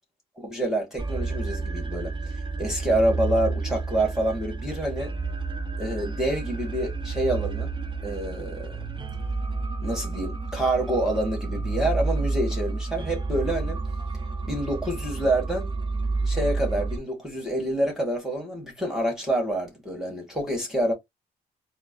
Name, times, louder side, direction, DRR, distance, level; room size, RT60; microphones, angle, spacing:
voice 1, 0.4-2.1 2.6-5.1 5.8-7.7 8.0-8.8 9.8-13.8 14.4-15.7 16.3-20.9, right 1 dB, 5° right, 2.1 m, -27 dB
sound 1, 1.0-17.0, right 3 dB, 25° right, 0.8 m, -30 dB
3.7 x 2.2 x 3.8 m
supercardioid pair, 50°, 18 cm